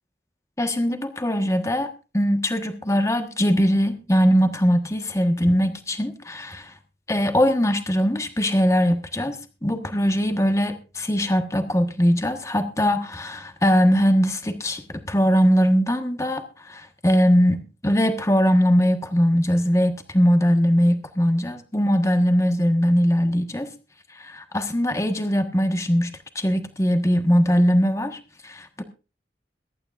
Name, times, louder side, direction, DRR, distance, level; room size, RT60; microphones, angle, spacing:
voice 1, 0.6-6.7 7.1-23.7 24.2-28.8, equal, 15° left, 7 dB, 1.4 m, -21 dB
22.5 x 12.0 x 2.5 m, 0.32 s
head